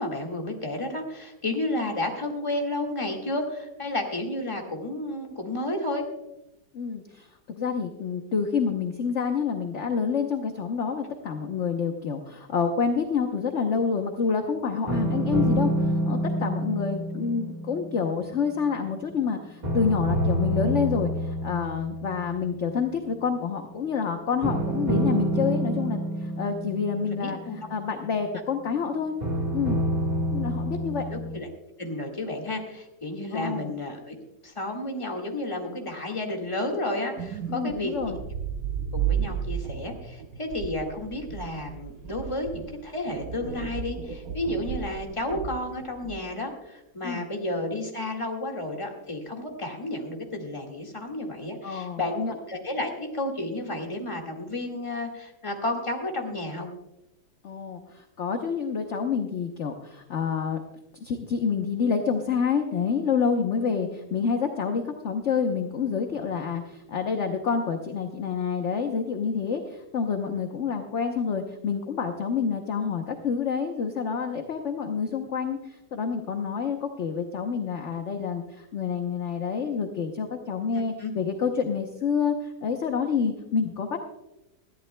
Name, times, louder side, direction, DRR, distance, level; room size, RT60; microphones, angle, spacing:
voice 1, 0.0-6.1 27.2-27.6 31.0-31.5 31.8-34.1 34.4-37.9 38.9-52.2 52.5-56.7 80.8-81.1, left 1 dB, 20° left, 0 dB, 1.9 m, -32 dB
voice 2, 6.7-27.4 27.7-29.1 29.5-29.8 30.3-31.0 33.3-33.7 37.5-38.2 47.0-47.3 51.6-52.3 57.4-60.6 61.0-84.0, left 6 dB, 50° left, 4 dB, 1.1 m, -28 dB
sound 1, 14.9-19.2 19.6-22.9 24.4-28.4 29.2-31.4, right 1 dB, 25° right, 1.7 m, -28 dB
sound 2, 37.2-46.3, right 8 dB, 65° right, 1.4 m, -33 dB
20.5 x 14.0 x 2.2 m, 0.96 s
omnidirectional pair, 1.7 m